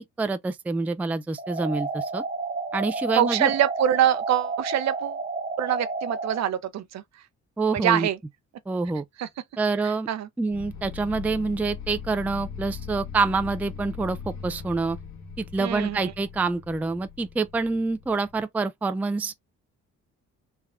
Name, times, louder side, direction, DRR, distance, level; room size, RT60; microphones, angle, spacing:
voice 1, 0.0-2.2 2.7-3.5 7.6-8.1 8.7-9.0 9.6-10.1 10.4-15.0 15.4-19.3, right 3 dB, 5° right, 0.3 m, -26 dB
sound 1, 1.4-6.4, right 3 dB, 25° right, 0.8 m, -31 dB
voice 2, 3.1-5.2 5.6-7.0 7.7-8.2 9.2-9.3 9.8-10.3 15.6-16.1, right 11 dB, 60° right, 0.6 m, -24 dB
sound 2, 10.5-18.4, left 7 dB, 65° left, 1.5 m, -40 dB
3.5 x 2.1 x 3.5 m
cardioid pair, 90°, 30 cm